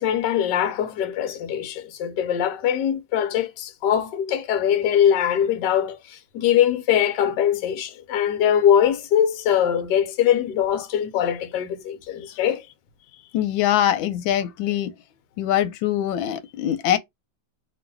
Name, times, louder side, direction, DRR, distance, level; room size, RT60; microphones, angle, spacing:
voice 1, 0.0-12.6, left 9 dB, 70° left, 1.3 m, -22 dB
voice 2, 13.3-14.9 15.4-17.0, left 11 dB, 90° left, 1.4 m, -23 dB
3.1 x 2.6 x 4.4 m
omnidirectional pair, 2.1 m